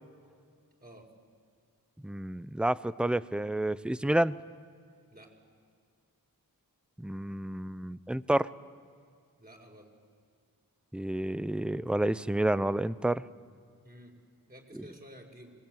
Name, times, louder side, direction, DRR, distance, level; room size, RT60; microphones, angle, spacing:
voice 1, 2.0-4.4 7.0-8.5 10.9-13.2, right 1 dB, 5° right, 16 dB, 0.6 m, -29 dB
voice 2, 9.4-9.9 13.8-14.1 14.5-15.5, equal, 25° right, 2 dB, 4.9 m, -51 dB
26.5 x 20.5 x 9.2 m, 2.2 s
wide cardioid pair, 55°, 38 cm